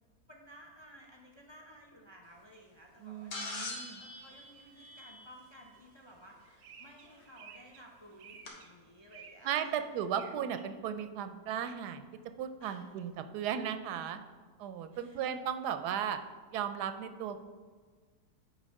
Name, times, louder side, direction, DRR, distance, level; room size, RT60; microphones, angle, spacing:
voice 1, 0.3-10.0 12.6-12.9 14.9-15.3, equal, 40° left, 0 dB, 0.3 m, -55 dB
voice 2, 3.0-4.0 9.4-12.0 12.4-14.2 14.6-16.2 16.5-17.5, right 8 dB, 90° right, 9 dB, 1.1 m, -36 dB
sound 1, 3.3-5.6 7.2-7.3 8.5-8.6, left 2 dB, 80° left, 1.8 m, -42 dB
sound 2, 3.5-3.6 3.9-10.6, right 6 dB, 60° right, 0.8 m, -57 dB
9.1 x 3.7 x 5.2 m, 1.5 s
omnidirectional pair, 1.7 m